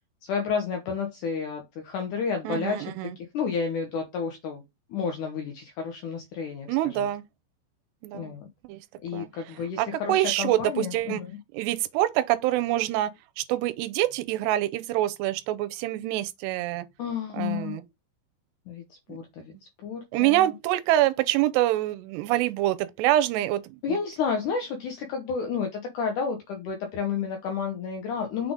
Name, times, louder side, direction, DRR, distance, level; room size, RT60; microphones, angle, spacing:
voice 1, 0.2-2.9 3.2-4.6 4.9-7.1 8.1-8.5 9.0-11.3 17.0-17.8 18.7-18.8 19.1-19.5 19.8-20.5 23.8-28.5, left 6 dB, 85° left, 1.7 m, -31 dB
voice 2, 2.4-3.1 6.7-7.2 8.0-8.3 8.7-8.8 9.1-9.3 9.8-11.2 11.5-13.1 13.4-16.9 17.3-17.8 19.1-19.2 20.1-23.6 23.9-24.0, right 14 dB, 80° right, 2.7 m, -25 dB
6.5 x 3.9 x 3.6 m
omnidirectional pair, 4.9 m